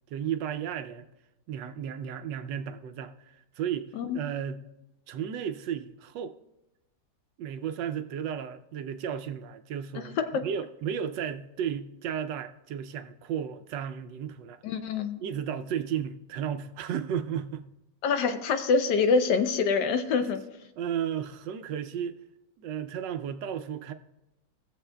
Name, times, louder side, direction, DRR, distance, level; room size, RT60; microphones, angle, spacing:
voice 1, 0.1-1.1 1.5-4.7 5.1-6.3 7.4-14.6 15.2-17.7 20.2-20.3 20.8-22.2 22.6-23.9, right 8 dB, 80° right, 1.2 m, -34 dB
voice 2, 9.9-10.4 14.6-15.2 18.0-20.4, left 5 dB, 75° left, 1.3 m, -25 dB
18.0 x 7.1 x 2.2 m
omnidirectional pair, 1.9 m